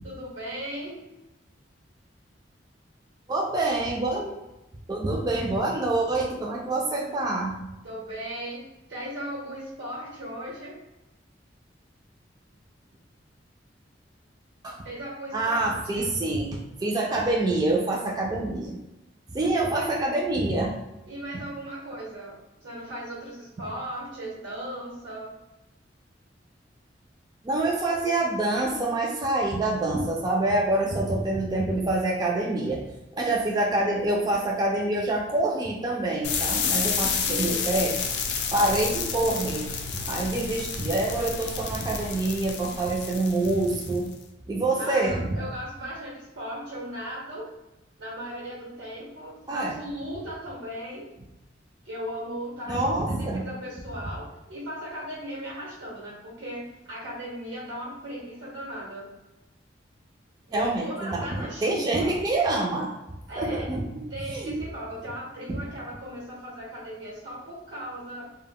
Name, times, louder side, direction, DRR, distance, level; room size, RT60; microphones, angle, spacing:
voice 1, 0.0-1.1 7.8-10.8 14.8-16.1 19.6-19.9 21.1-25.4 37.2-37.8 44.8-47.5 48.0-51.1 51.8-59.1 60.5-62.2 63.3-63.7 64.1-68.3, equal, 85° right, -5 dB, 0.9 m, -37 dB
voice 2, 3.3-4.3 4.9-7.6 14.6-14.8 15.3-16.5 16.8-18.8 19.3-20.7 27.4-32.8 33.1-37.9 38.5-39.6 40.1-44.1 44.5-45.4 49.5-49.7 52.7-53.5 60.5-62.9 63.4-64.0 64.3-64.6, right 2 dB, 20° right, -2 dB, 0.3 m, -26 dB
sound 1, 36.2-44.1, left 6 dB, 65° left, 0.4 m, -30 dB
2.1 x 2.0 x 3.5 m, 0.97 s
head